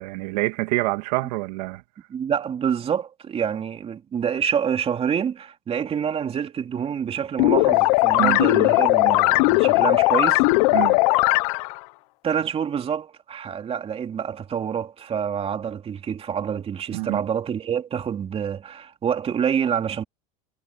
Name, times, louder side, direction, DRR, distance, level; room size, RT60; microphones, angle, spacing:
voice 1, 0.0-1.8 8.2-8.4 9.0-9.2 10.7-11.0 16.9-17.2, right 23 dB, 75° right, 2.6 m, -26 dB
voice 2, 2.1-10.4 12.2-20.0, right 8 dB, 30° right, 3.0 m, -27 dB
sound 1, 7.4-11.8, left 24 dB, 70° left, 0.9 m, -18 dB
supercardioid pair, 120°, 21 cm